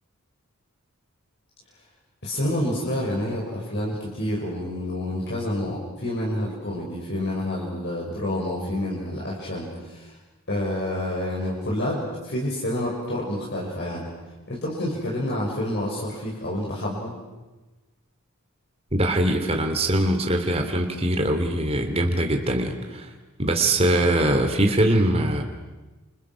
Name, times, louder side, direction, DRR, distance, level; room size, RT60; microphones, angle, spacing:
voice 1, 2.2-10.1 10.5-14.0 14.5-17.1, left 1 dB, 50° left, -4 dB, 6.5 m, -28 dB
voice 2, 18.9-23.1 23.4-25.4, right 1 dB, 25° right, 4 dB, 3.0 m, -22 dB
30.0 x 29.0 x 6.3 m, 1.2 s
head